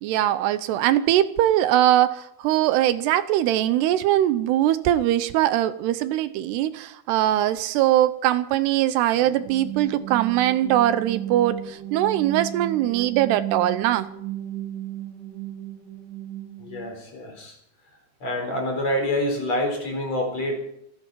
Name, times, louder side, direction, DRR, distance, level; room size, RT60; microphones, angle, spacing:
voice 1, 0.0-14.1, right 13 dB, 80° right, 13 dB, 2.7 m, -21 dB
sound 1, 9.1-16.9, right 12 dB, 50° right, 4.0 m, -34 dB
voice 2, 16.6-17.5 18.2-20.5, left 1 dB, 40° left, 2 dB, 5.2 m, -27 dB
26.0 x 12.0 x 4.6 m, 0.73 s
omnidirectional pair, 4.9 m